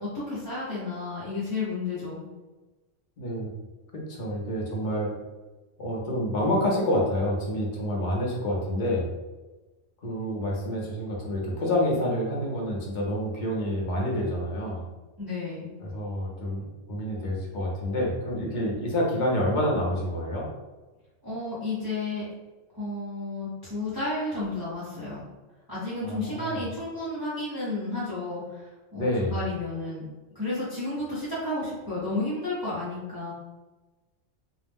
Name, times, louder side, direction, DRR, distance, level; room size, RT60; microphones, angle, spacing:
voice 1, 0.0-2.2 15.2-15.7 21.2-22.2 22.7-25.2 25.7-30.0 30.3-33.3, left 2 dB, 25° right, -10 dB, 0.6 m, -32 dB
voice 2, 3.2-3.6 4.1-5.1 5.8-9.1 10.0-14.9 15.8-20.4 26.0-26.6 28.9-29.3, equal, 50° left, -2 dB, 0.6 m, -28 dB
2.4 x 2.0 x 3.3 m, 1.2 s
omnidirectional pair, 1.3 m